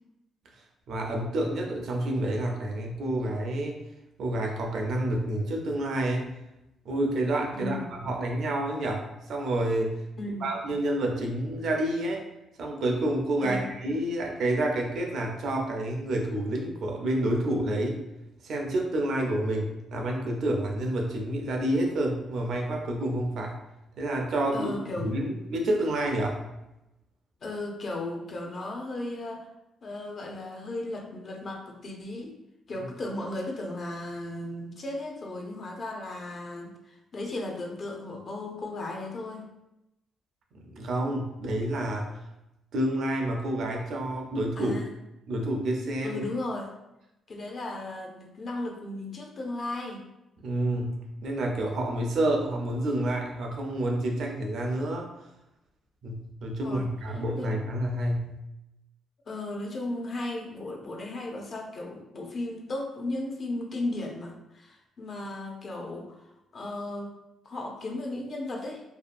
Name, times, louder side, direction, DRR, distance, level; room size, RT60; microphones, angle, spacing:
voice 1, 0.9-3.8 4.2-6.3 6.9-9.9 10.4-12.2 12.6-18.1 18.4-23.5 24.0-24.7 25.0-26.4 40.5-42.1 42.7-44.8 45.3-46.2 50.4-55.1 56.0-58.4, right 1 dB, 65° right, 1 dB, 0.5 m, -29 dB
voice 2, 7.5-7.9 10.2-10.6 13.4-13.7 24.5-25.1 27.4-29.5 29.8-32.4 32.7-39.5 44.6-44.9 46.0-46.7 47.3-50.0 56.6-57.6 59.3-67.1 67.4-68.8, left 2 dB, 50° left, 1 dB, 0.5 m, -35 dB
2.7 x 2.3 x 2.5 m, 0.91 s
cardioid pair, 90°, 0 cm